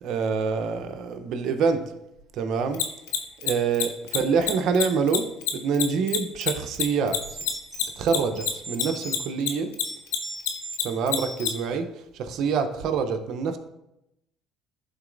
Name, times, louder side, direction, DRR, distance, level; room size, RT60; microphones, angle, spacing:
voice 1, 0.0-1.8 2.3-2.8 3.4-5.2 5.5-7.2 8.0-9.7 10.8-11.9 12.1-13.6, right 5 dB, 65° right, 7 dB, 0.7 m, -26 dB
Mechanisms, 2.7-9.5 9.7-11.5, left 15 dB, 85° left, 0.6 m, -25 dB
sound 1, 6.6-6.7 7.2-9.3 9.8-10.8 11.2-11.7, right 1 dB, 10° right, 1.6 m, -39 dB
11.0 x 3.9 x 2.6 m, 0.87 s
supercardioid pair, 75°, 0 cm